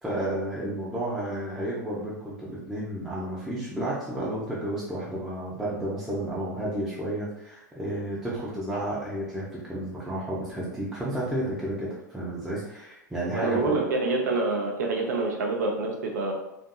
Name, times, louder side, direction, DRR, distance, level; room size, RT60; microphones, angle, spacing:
voice 1, 0.0-13.8, right 1 dB, 5° right, -8 dB, 0.6 m, -32 dB
voice 2, 13.3-16.3, right 3 dB, 65° right, 0 dB, 0.5 m, -26 dB
2.6 x 2.6 x 2.3 m, 0.87 s
figure-of-eight pair, 90°, 10 cm